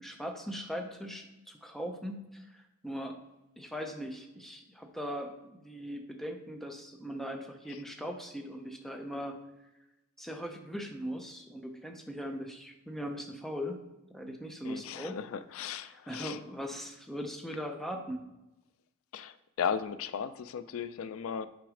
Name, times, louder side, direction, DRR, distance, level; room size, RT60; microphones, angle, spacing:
voice 1, 0.0-3.2 3.6-9.4 10.2-13.8 14.1-15.2 15.9-18.2, equal, ahead, 3 dB, 0.6 m, -40 dB
voice 2, 14.6-16.4 19.1-21.5, left 7 dB, 75° left, 13 dB, 0.3 m, -36 dB
6.2 x 3.9 x 4.9 m, 0.97 s
head